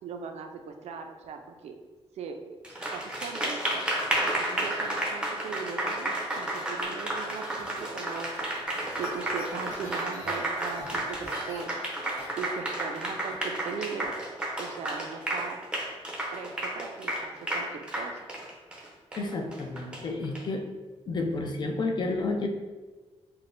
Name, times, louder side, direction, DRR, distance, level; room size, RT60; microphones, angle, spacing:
voice 1, 0.0-1.8 2.2-2.4 2.7-3.8 4.2-8.3 8.7-11.7 12.4-14.1 14.6-15.6 16.3-18.3, right 5 dB, 70° right, 5 dB, 0.4 m, -39 dB
Applause, 2.6-20.4, right 1 dB, 10° right, 0.6 m, -32 dB
sound 1, 7.1-13.4, left 1 dB, 80° left, 1.1 m, -47 dB
voice 2, 19.2-20.7 21.1-22.5, left 3 dB, 40° left, 4 dB, 0.4 m, -30 dB
5.9 x 2.1 x 2.5 m, 1.3 s
wide cardioid pair, 160°, 11 cm